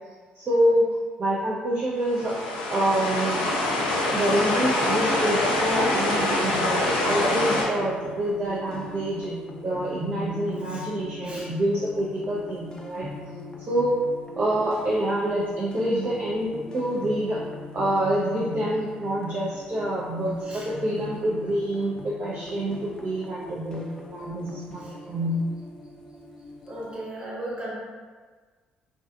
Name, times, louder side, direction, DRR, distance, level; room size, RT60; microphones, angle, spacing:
voice 1, 0.4-2.4 2.7-3.4 4.1-13.1 13.7-14.0 14.4-17.4 17.7-25.5, right 1 dB, 40° right, -5 dB, 0.4 m, -26 dB
sound 1, 2.1-7.6, left 1 dB, 90° left, 0.4 m, -25 dB
sound 2, 7.2-27.0, left 3 dB, 15° left, 0.4 m, -41 dB
voice 2, 26.6-27.7, right 1 dB, 25° right, -6 dB, 1.0 m, -36 dB
2.4 x 2.3 x 2.3 m, 1.4 s
hypercardioid pair, 50°, 4 cm